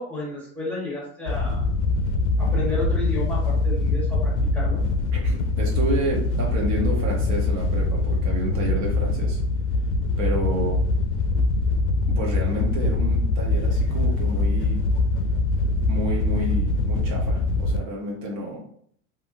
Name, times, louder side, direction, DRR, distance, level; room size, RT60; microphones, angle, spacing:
voice 1, 0.0-1.6 2.4-4.8 13.9-14.0, left 2 dB, 5° left, -6 dB, 1.2 m, -32 dB
Wind / Boat Water vehicle, 1.3-17.8, left 2 dB, 75° left, 0.5 m, -23 dB
voice 2, 5.1-9.4 10.2-10.8 12.2-14.8 15.9-18.6, right 1 dB, 60° right, -2 dB, 1.0 m, -30 dB
2.7 x 2.6 x 2.6 m, 0.63 s
supercardioid pair, 125°, 36 cm